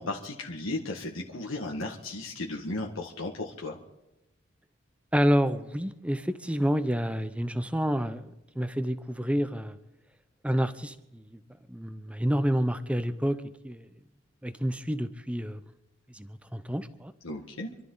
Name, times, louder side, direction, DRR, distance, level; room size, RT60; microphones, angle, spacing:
voice 1, 0.0-3.8 17.2-17.7, left 2 dB, 80° left, -1 dB, 1.8 m, -35 dB
voice 2, 5.1-8.3 8.6-9.8 10.4-11.4 11.7-13.4 13.6-13.9 14.4-15.6 16.1-17.1, equal, 5° right, 11 dB, 0.7 m, -28 dB
26.0 x 12.5 x 4.0 m, 0.90 s
head